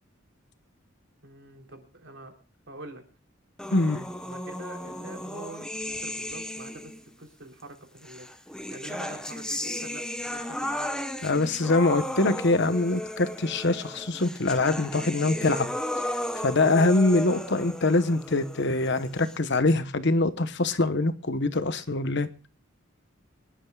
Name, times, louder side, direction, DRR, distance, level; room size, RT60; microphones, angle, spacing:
voice 1, 1.2-2.3 2.7-3.0 4.2-8.3 8.7-10.9, right 2 dB, 65° right, 3.6 m, -45 dB
sound 1, 3.6-7.0 8.0-19.6, left 1 dB, 5° left, 1.0 m, -35 dB
voice 2, 3.7-4.0 11.2-15.7 16.3-22.3, left 2 dB, 55° left, 1.1 m, -24 dB
25.0 x 11.5 x 2.4 m
head